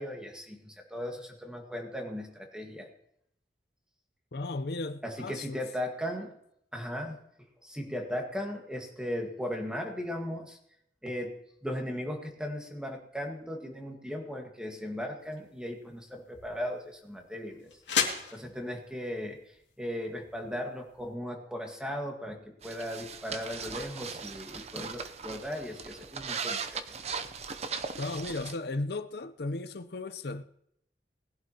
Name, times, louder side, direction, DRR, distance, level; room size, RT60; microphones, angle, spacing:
voice 1, 0.0-2.9 5.0-6.3 6.7-7.2 7.6-10.6 11.0-17.7 18.3-19.4 19.8-27.0, equal, 5° right, 1.6 m, -37 dB
voice 2, 4.3-5.6 28.0-30.4, left 2 dB, 65° left, 0.7 m, -35 dB
sound 1, 15.2-21.1, left 7 dB, 85° left, 2.3 m, -37 dB
sound 2, 22.6-28.6, right 5 dB, 40° right, 0.6 m, -38 dB
20.0 x 11.0 x 2.9 m
head